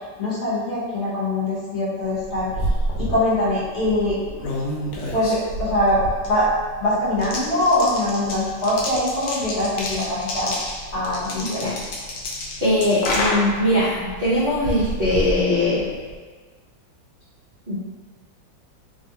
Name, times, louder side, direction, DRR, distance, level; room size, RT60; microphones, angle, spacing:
voice 1, 0.2-2.5 3.0-4.4 5.1-6.5 6.8-10.5 10.9-11.6, left 1 dB, 45° left, -8 dB, 1.0 m, -23 dB
sound 1, 2.1-16.2, equal, 70° left, 1.1 m, -29 dB
voice 2, 11.4-11.7 12.6-15.9 17.7-17.8, left 1 dB, 80° right, -12 dB, 0.4 m, -21 dB
3.0 x 2.4 x 2.7 m, 1.5 s
omnidirectional pair, 2.0 m